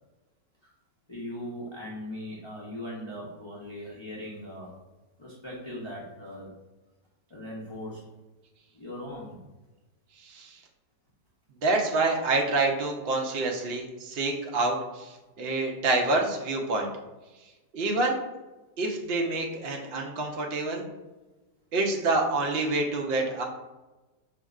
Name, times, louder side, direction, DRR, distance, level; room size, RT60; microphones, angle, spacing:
voice 1, 1.1-4.7 5.2-6.5 7.3-8.0 8.7-9.4, left 1 dB, 35° left, -7 dB, 0.4 m, -39 dB
voice 2, 11.6-16.9 17.7-18.2 18.8-20.8 21.7-23.4, right 2 dB, 75° right, 1 dB, 0.5 m, -27 dB
5.2 x 2.7 x 2.3 m, 1.1 s
omnidirectional pair, 1.7 m